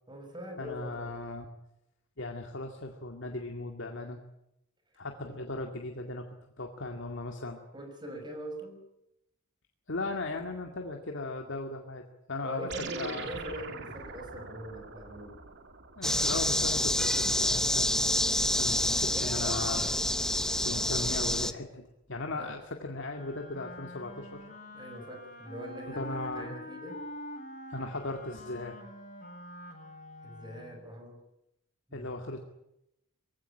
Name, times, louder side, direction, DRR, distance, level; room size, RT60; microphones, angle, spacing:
voice 1, 0.1-1.2 7.7-8.8 12.4-15.4 22.4-22.6 24.7-27.0 30.2-31.2 31.9-32.1, equal, 20° right, 5 dB, 5.9 m, -42 dB
voice 2, 0.6-1.4 2.2-4.2 5.0-6.3 6.6-7.6 9.9-12.0 12.3-13.4 16.0-17.9 18.4-20.1 20.6-21.8 22.1-24.4 25.9-26.5 27.7-28.7 31.9-32.4, left 2 dB, 60° left, 3 dB, 2.3 m, -37 dB
sound 1, 12.7-17.4, right 4 dB, 55° right, 2.7 m, -44 dB
sound 2, 16.0-21.5, left 1 dB, 5° left, 0.9 m, -28 dB
Wind instrument woodwind instrument, 23.0-30.9, left 1 dB, 40° left, 7.9 m, -45 dB
22.5 x 16.5 x 10.0 m, 0.84 s
head